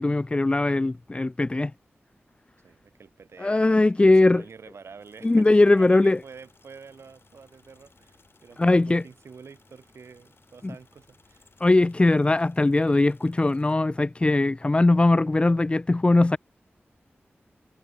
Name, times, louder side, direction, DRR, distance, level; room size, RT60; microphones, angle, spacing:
voice 1, 0.0-1.7 3.4-4.4 5.2-6.2 8.6-9.0 11.6-16.4, left 2 dB, 25° left, 0.3 m, -20 dB
voice 2, 2.6-11.5, right 5 dB, 85° right, 4.3 m, -48 dB
sound 1, 5.0-13.8, left 4 dB, 60° left, 7.3 m, -61 dB
cardioid pair, 55°, 4 cm